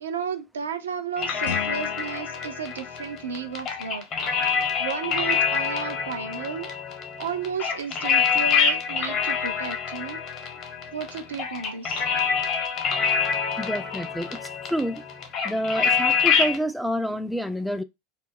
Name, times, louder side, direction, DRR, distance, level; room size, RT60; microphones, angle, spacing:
voice 1, 0.0-4.0 4.8-6.7 7.2-10.2 10.9-12.0, right 6 dB, 75° right, 0.4 m, -33 dB
sound 1, 1.2-16.6, left 6 dB, 40° left, 0.8 m, -26 dB
Guitar, 1.4-4.2, left 8 dB, 70° left, 0.4 m, -40 dB
voice 2, 13.6-15.0 15.4-17.8, equal, ahead, 0.3 m, -28 dB
2.3 x 2.0 x 3.5 m
figure-of-eight pair, 85°, 0 cm